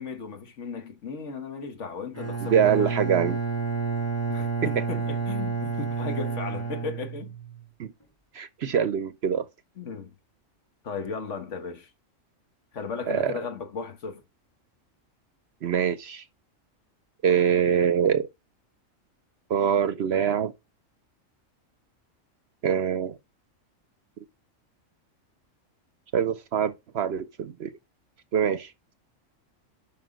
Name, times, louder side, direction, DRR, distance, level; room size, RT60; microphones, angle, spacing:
voice 1, 0.0-2.9 4.3-7.3 9.8-10.1 10.8-11.9 12.7-14.2, left 5 dB, 65° left, 1.6 m, -36 dB
Bowed string instrument, 2.1-7.6, right 5 dB, 10° left, 1.6 m, -30 dB
voice 2, 2.4-3.4 7.8-7.9 8.3-9.5 13.1-13.4 15.6-16.2 17.2-18.3 19.5-20.5 22.6-23.2 26.1-27.8 28.3-28.7, right 8 dB, 60° right, 0.8 m, -24 dB
7.6 x 5.8 x 5.1 m
omnidirectional pair, 1.4 m